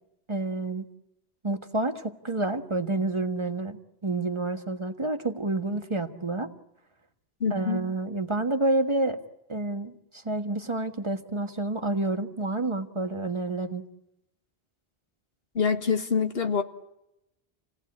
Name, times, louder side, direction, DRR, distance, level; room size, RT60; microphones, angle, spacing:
voice 1, 0.3-0.8 1.4-6.5 7.5-9.2 9.5-13.9, right 2 dB, 30° right, 6 dB, 1.5 m, -29 dB
voice 2, 7.4-7.8 15.6-16.6, left 6 dB, 70° left, 6 dB, 1.8 m, -25 dB
28.5 x 17.5 x 8.6 m, 0.88 s
omnidirectional pair, 1.1 m